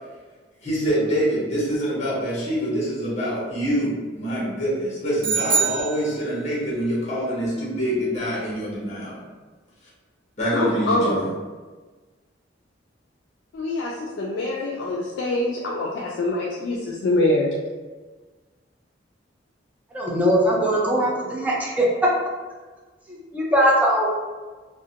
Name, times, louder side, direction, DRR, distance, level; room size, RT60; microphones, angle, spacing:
voice 1, 0.6-9.2 10.4-11.2, equal, 40° left, -7 dB, 0.8 m, -25 dB
sound 1, 5.2-6.7, right 5 dB, 45° right, 0.7 m, -24 dB
voice 2, 10.5-11.3 13.5-17.6, left 1 dB, 70° left, -3 dB, 0.3 m, -24 dB
voice 3, 19.9-21.9 23.1-24.2, equal, 10° right, -4 dB, 0.5 m, -21 dB
2.4 x 2.1 x 2.7 m, 1.3 s
head